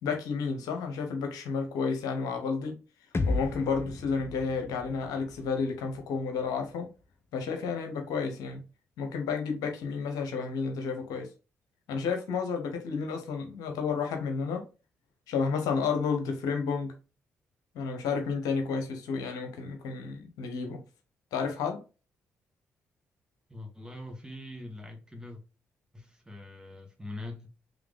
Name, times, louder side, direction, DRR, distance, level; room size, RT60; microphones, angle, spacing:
voice 1, 0.0-2.8 3.3-6.9 7.3-8.6 9.0-11.3 11.9-14.6 15.3-16.9 17.7-20.8 21.3-21.8, left 5 dB, 70° left, 0.9 m, -31 dB
sound 1, 3.1-7.1, left 3 dB, 35° left, 0.8 m, -35 dB
voice 2, 23.5-25.4 25.9-27.5, left 1 dB, 10° right, 1.8 m, -43 dB
5.0 x 3.1 x 3.4 m
hypercardioid pair, 40°, 7 cm